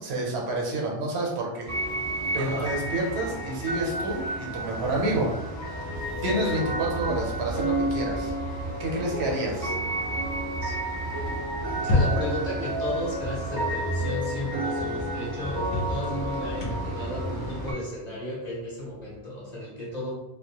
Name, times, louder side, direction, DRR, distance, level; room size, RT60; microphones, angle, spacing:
voice 1, 0.0-1.7 2.3-5.3 6.2-8.3 8.8-9.7, right 2 dB, 70° right, -1 dB, 0.9 m, -29 dB
sound 1, 1.6-17.7, right 1 dB, 20° right, 0.5 m, -31 dB
voice 2, 2.3-2.8 10.6-10.7 11.7-20.2, left 1 dB, 45° left, -6 dB, 0.8 m, -34 dB
sound 2, 11.8-12.5 14.3-14.4 14.8-14.9 15.6-19.2, left 2 dB, 75° left, 0.8 m, -29 dB
2.2 x 2.1 x 2.8 m, 0.96 s
omnidirectional pair, 1.1 m